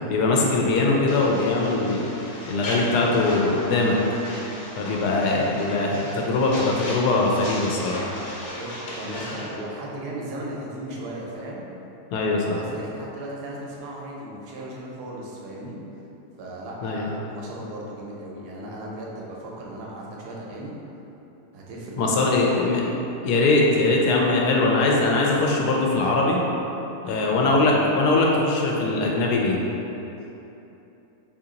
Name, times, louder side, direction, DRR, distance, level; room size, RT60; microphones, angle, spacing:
voice 1, 0.1-2.1 2.5-4.0 4.8-8.0 12.1-12.6 16.8-17.0 22.0-22.8 23.2-26.4 27.0-29.7, left 2 dB, 80° left, -1 dB, 1.1 m, -21 dB
voice 2, 0.6-1.1 8.5-11.6 12.3-15.8 16.4-20.7 21.5-23.0 27.3-27.6, right 1 dB, 80° right, -3 dB, 1.2 m, -36 dB
sound 1, 1.1-9.6, left 1 dB, 55° left, 1.0 m, -36 dB
2.9 x 2.8 x 3.7 m, 3.0 s
omnidirectional pair, 1.7 m